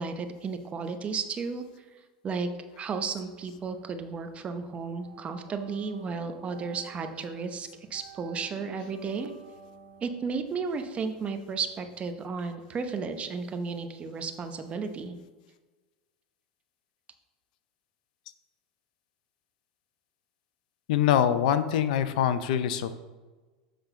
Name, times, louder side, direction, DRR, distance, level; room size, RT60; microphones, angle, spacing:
voice 1, 0.0-1.6 2.2-2.5 2.8-9.3 10.0-15.1, right 5 dB, 25° right, 7 dB, 0.8 m, -33 dB
sound 1, 3.1-4.2 4.5-12.4, right 5 dB, 45° right, 1.7 m, -52 dB
voice 2, 20.9-22.9, left 9 dB, 70° left, 12 dB, 0.6 m, -24 dB
7.6 x 3.8 x 5.8 m, 1.3 s
hypercardioid pair, 110°, 4 cm